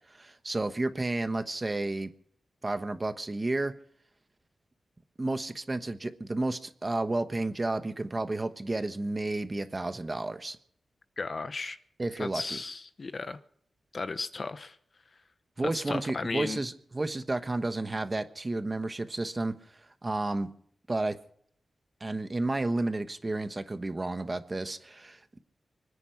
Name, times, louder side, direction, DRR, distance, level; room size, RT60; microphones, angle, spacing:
voice 1, 0.1-2.1 2.6-3.7 5.2-10.6 12.0-12.6 15.6-19.5 20.0-20.5 20.9-21.2 22.0-25.4, right 2 dB, 25° right, 9 dB, 1.2 m, -31 dB
voice 2, 11.2-11.8 12.2-13.4 13.9-14.8 15.7-16.6, left 3 dB, 45° left, 12 dB, 0.8 m, -35 dB
25.0 x 9.9 x 5.8 m, 0.64 s
wide cardioid pair, 95°, 0 cm